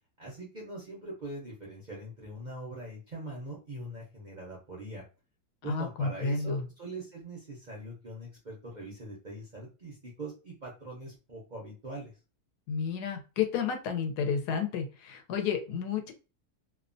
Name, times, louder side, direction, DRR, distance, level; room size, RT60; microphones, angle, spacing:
voice 1, 0.2-5.0 5.6-12.1, right 1 dB, 50° right, -3 dB, 0.5 m, -42 dB
voice 2, 5.6-6.6 12.7-16.1, left 6 dB, 85° left, 5 dB, 1.2 m, -31 dB
2.8 x 2.1 x 2.5 m, 0.32 s
omnidirectional pair, 1.7 m